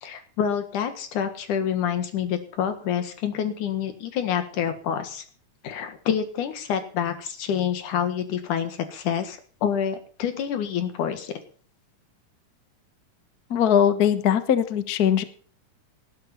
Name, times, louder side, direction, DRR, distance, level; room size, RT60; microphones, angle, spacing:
voice 1, 0.0-5.2 5.6-11.4, left 8 dB, 70° left, 8 dB, 3.1 m, -27 dB
voice 2, 13.5-15.2, left 9 dB, 90° left, 10 dB, 0.8 m, -20 dB
19.5 x 11.5 x 4.3 m, 0.42 s
omnidirectional pair, 3.8 m